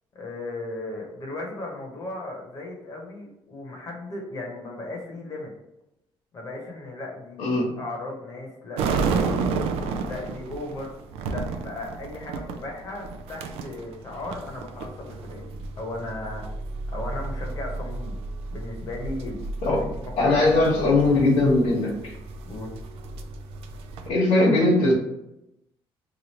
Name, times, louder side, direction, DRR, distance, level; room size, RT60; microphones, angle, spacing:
voice 1, 0.1-5.5 6.3-9.5 10.0-10.9 11.2-15.4 15.8-16.5 16.9-18.2 18.5-19.4 19.7-20.9 22.5-22.7, left 2 dB, 40° left, -1 dB, 0.9 m, -36 dB
voice 2, 7.4-7.7 19.6-19.8 20.2-22.1 24.1-24.9, left 2 dB, 70° left, -7 dB, 1.2 m, -20 dB
sound 1, 8.8-24.1, right 4 dB, 90° right, 0.4 m, -32 dB
3.1 x 2.5 x 4.1 m, 0.85 s
cardioid pair, 145°, 10 cm